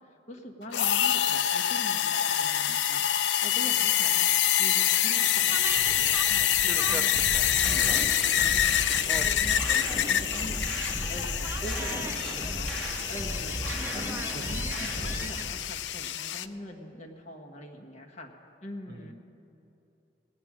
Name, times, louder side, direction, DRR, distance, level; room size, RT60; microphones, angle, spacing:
voice 1, 0.0-3.0 3.4-10.6 10.9-18.3 18.6-19.1, equal, 40° left, 0 dB, 1.3 m, -43 dB
sound 1, 0.7-16.5, left 10 dB, 75° left, 0.4 m, -26 dB
sound 2, 5.2-15.7, right 2 dB, 15° right, 0.5 m, -40 dB
sound 3, 7.1-15.2, equal, 5° left, 3.3 m, -35 dB
voice 2, 14.3-15.1 18.9-19.1, right 2 dB, 60° right, 7 dB, 0.8 m, -45 dB
18.5 x 8.6 x 6.1 m, 2.9 s
head